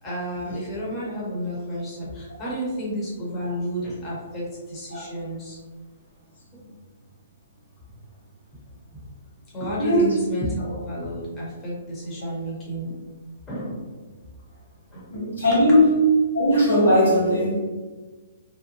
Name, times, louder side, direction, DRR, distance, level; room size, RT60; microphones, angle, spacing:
voice 1, 0.0-5.6 6.5-6.7 8.9-9.1 9.5-13.0 13.5-13.9 14.9-15.2 15.4-15.6, equal, 20° left, -7 dB, 1.0 m, -31 dB
voice 2, 15.1-16.0 16.3-17.6, left 1 dB, 85° left, -6 dB, 1.3 m, -18 dB
2.7 x 2.1 x 3.0 m, 1.3 s
hypercardioid pair, 130°, 0 cm